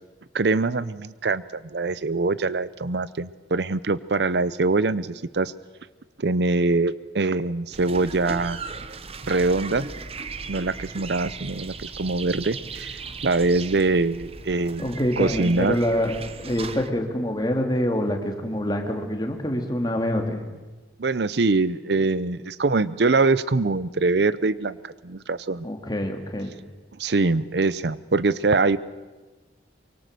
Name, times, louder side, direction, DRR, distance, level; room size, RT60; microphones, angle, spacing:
voice 1, 0.3-1.4 1.7-5.5 6.2-8.6 9.2-9.9 10.5-15.8 21.0-25.7 27.0-28.8, right 3 dB, 75° right, 18 dB, 0.7 m, -23 dB
sound 1, 7.7-16.9, right 4 dB, 35° right, 1.0 m, -37 dB
voice 2, 14.8-20.4 25.6-26.5, equal, 25° left, 4 dB, 2.7 m, -26 dB
24.5 x 23.5 x 6.8 m, 1.2 s
head